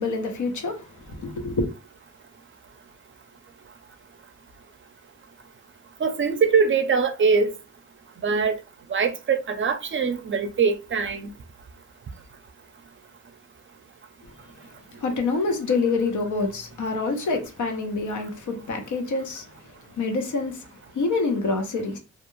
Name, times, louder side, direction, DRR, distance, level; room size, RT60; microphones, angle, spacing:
voice 1, 0.0-1.7 15.0-19.4 20.0-20.6 20.9-22.0, left 3 dB, 85° left, 0.8 m, -26 dB
voice 2, 6.0-7.5 8.2-8.5 8.9-11.3, right 5 dB, 40° right, 0.4 m, -22 dB
2.4 x 2.2 x 3.0 m
wide cardioid pair, 115°, 30 cm